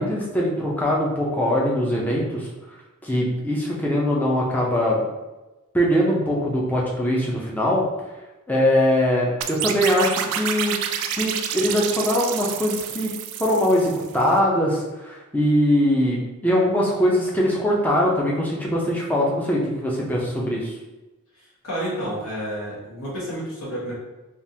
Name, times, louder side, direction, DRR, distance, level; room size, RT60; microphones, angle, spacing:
voice 1, 0.0-2.5 3.0-5.1 5.7-7.8 8.5-10.8 11.2-13.1 13.4-20.7, equal, 5° left, -3 dB, 0.5 m, -22 dB
sound 1, 9.4-14.2, right 8 dB, 75° right, 0.3 m, -29 dB
voice 2, 21.4-23.9, equal, 70° left, -7 dB, 1.3 m, -30 dB
3.4 x 2.4 x 2.7 m, 1.1 s
head